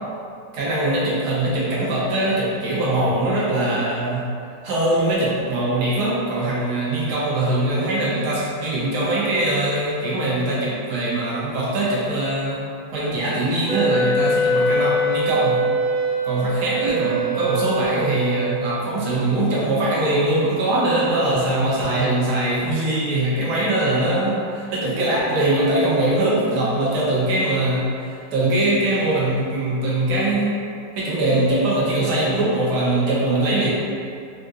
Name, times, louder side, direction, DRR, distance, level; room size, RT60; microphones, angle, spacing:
voice 1, 0.5-4.3 4.6-12.6 12.9-15.6 16.2-30.5 31.0-33.7, right 1 dB, 65° right, -6 dB, 1.2 m, -22 dB
Wind instrument woodwind instrument, 13.7-18.9, right 1 dB, 90° right, 1.7 m, -23 dB
3.6 x 2.7 x 2.3 m, 2.4 s
omnidirectional pair, 2.1 m